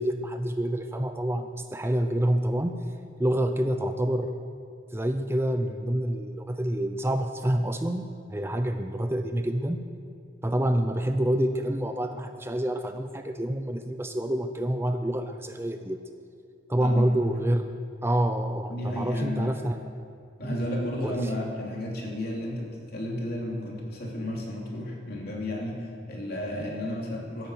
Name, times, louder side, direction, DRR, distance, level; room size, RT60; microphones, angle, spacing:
voice 1, 0.0-2.8 3.2-4.5 4.9-9.8 10.4-16.0 16.7-17.7 18.0-19.8 20.4-20.7 21.0-21.2, right 1 dB, 15° right, 7 dB, 0.5 m, -27 dB
voice 2, 16.8-17.1 18.7-19.6 20.4-27.5, left 1 dB, 55° left, -1 dB, 2.9 m, -33 dB
13.0 x 11.0 x 8.0 m, 2.4 s
head